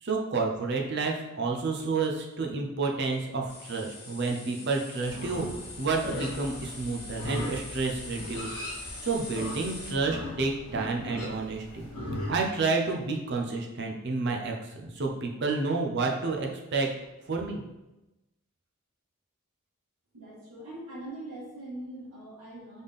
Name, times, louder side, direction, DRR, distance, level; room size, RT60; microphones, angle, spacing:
voice 1, 0.0-5.4 5.8-8.5 9.0-11.9 12.3-16.9 17.3-17.6, right 3 dB, 50° right, 1 dB, 0.6 m, -30 dB
sound 1, 3.5-9.9, left 3 dB, 45° left, 1.1 m, -44 dB
Livestock farm animals working animals, 5.0-12.3, left 1 dB, 90° left, 1.2 m, -39 dB
voice 2, 20.1-22.8, right 1 dB, 90° right, -11 dB, 1.5 m, -42 dB
4.1 x 3.5 x 3.5 m, 1.0 s
head